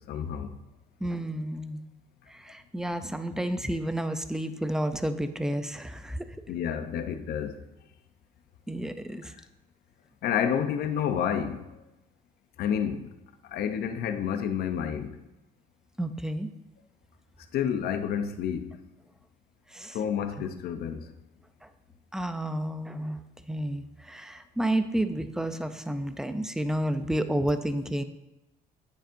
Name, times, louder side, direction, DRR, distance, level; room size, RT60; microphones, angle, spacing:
voice 1, 0.1-0.5 6.5-7.5 10.2-11.6 12.6-13.1 13.5-15.1 17.5-18.7 19.9-21.0, left 8 dB, 65° left, 8 dB, 0.7 m, -29 dB
voice 2, 1.0-1.8 2.3-6.2 8.7-9.3 16.0-16.5 19.7-20.0 22.1-23.2 23.5-28.0, right 1 dB, 5° right, 10 dB, 0.5 m, -30 dB
8.9 x 7.0 x 2.6 m, 0.95 s
cardioid pair, 110°, 17 cm